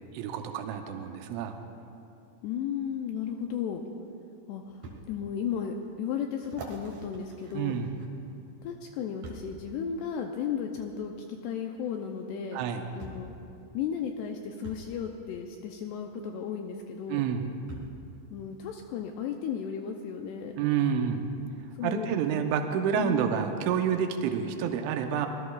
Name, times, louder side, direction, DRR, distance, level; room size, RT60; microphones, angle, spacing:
voice 1, 0.1-1.6 7.5-7.9 12.5-12.8 17.1-17.5 20.6-21.3 21.8-25.3, right 8 dB, 85° right, 5 dB, 3.2 m, -28 dB
voice 2, 2.4-3.8 4.5-7.7 8.6-12.6 13.0-13.3 13.7-17.2 18.3-20.6 21.7-22.1 23.0-23.3, left 7 dB, 90° left, 3 dB, 2.4 m, -34 dB
sound 1, 4.8-5.0 5.6-5.7 6.4-8.3 9.2-9.6 10.7-10.9 12.2-12.3 13.0-13.3 14.6-14.9 16.5-16.6 17.7-18.0 18.8-18.9, right 3 dB, 55° right, 2.2 m, -45 dB
25.5 x 19.5 x 2.4 m, 2.7 s
omnidirectional pair, 5.4 m